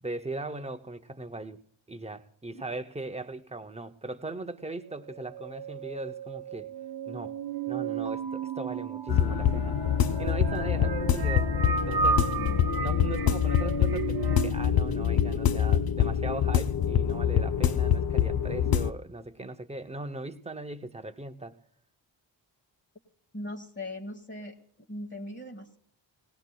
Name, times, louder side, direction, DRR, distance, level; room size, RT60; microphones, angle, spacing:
voice 1, 0.0-1.6 1.9-6.7 7.1-7.4 7.7-9.8 10.2-12.3 12.8-21.6, right 2 dB, 15° right, 8 dB, 0.5 m, -39 dB
sound 1, 4.9-14.5, right 6 dB, 55° right, 0.6 m, -34 dB
Keyboard (musical), 8.0-10.6, right 2 dB, 75° left, 2.8 m, -50 dB
sound 2, 9.1-18.9, left 9 dB, 50° left, 0.5 m, -25 dB
voice 2, 23.3-24.5 24.9-25.8, left 1 dB, 25° left, 3 dB, 1.2 m, -39 dB
19.0 x 18.0 x 2.2 m, 0.65 s
wide cardioid pair, 130°, 47 cm